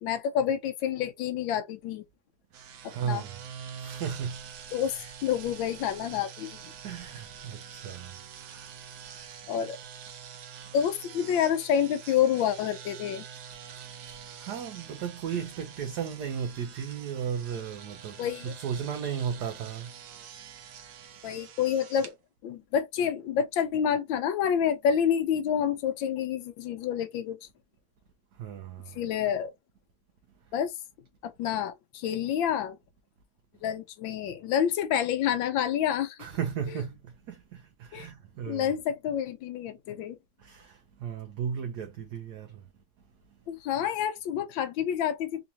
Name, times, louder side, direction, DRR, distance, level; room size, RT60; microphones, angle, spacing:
voice 1, 0.0-2.0 2.8-3.2 4.7-6.5 9.5-9.8 10.7-13.2 18.2-18.5 21.2-22.1 22.4-27.5 28.9-29.5 30.5-30.7 31.2-32.8 33.6-36.2 37.9-38.1 38.5-40.2 43.5-45.5, left 9 dB, 80° left, 1.4 m, -28 dB
sound 1, 2.5-22.1, right 8 dB, 85° right, 1.6 m, -46 dB
voice 2, 2.9-3.3 3.8-4.5 4.9-5.1 6.8-9.3 13.8-20.0 20.4-20.5 28.3-29.0 30.4-30.5 36.2-38.7 40.4-42.7 43.3-43.4, right 7 dB, 65° right, 1.1 m, -36 dB
3.8 x 2.9 x 2.7 m
omnidirectional pair, 2.1 m